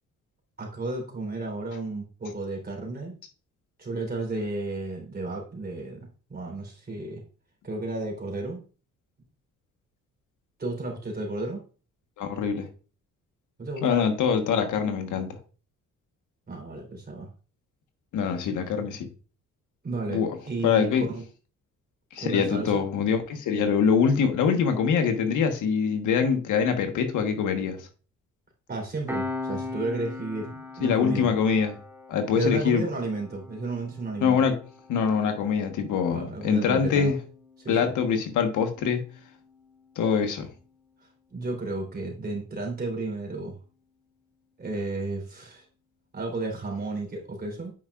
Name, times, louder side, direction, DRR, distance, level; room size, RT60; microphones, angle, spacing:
voice 1, 0.6-3.1 3.8-6.0 6.3-7.2 7.6-8.6 10.6-11.6 13.6-14.1 16.5-17.3 19.8-21.2 22.2-22.7 28.7-31.3 32.4-34.4 36.1-37.2 37.6-37.9 41.3-43.6 44.6-45.7 46.1-47.7, right 2 dB, 30° right, 0 dB, 3.6 m, -33 dB
voice 2, 12.2-12.7 13.8-15.3 18.1-19.1 20.1-20.4 20.6-21.1 22.1-27.9 30.8-31.7 32.1-32.8 34.2-34.6 34.9-37.2 37.7-39.0 40.0-40.5, left 6 dB, 80° left, 5 dB, 1.3 m, -24 dB
Piano, 29.1-40.2, left 3 dB, 10° right, 2.1 m, -41 dB
9.2 x 5.6 x 2.4 m, 0.36 s
cardioid pair, 90°, 30 cm